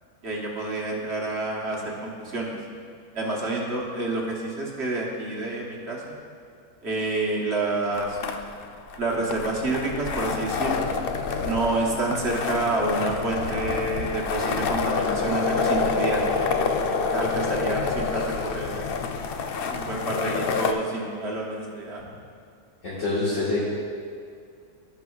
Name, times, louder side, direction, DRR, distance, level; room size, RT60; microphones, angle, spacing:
voice 1, 0.2-2.6 3.1-6.1 6.8-8.2 9.0-10.9 11.4-16.2 17.1-18.9 19.7-22.0, right 2 dB, 50° right, -3 dB, 1.5 m, -28 dB
sound 1, 8.0-20.7, left 5 dB, 85° left, 0.5 m, -27 dB
voice 2, 22.8-23.6, left 3 dB, 55° left, -10 dB, 2.0 m, -25 dB
16.5 x 6.1 x 2.4 m, 2.3 s
omnidirectional pair, 1.6 m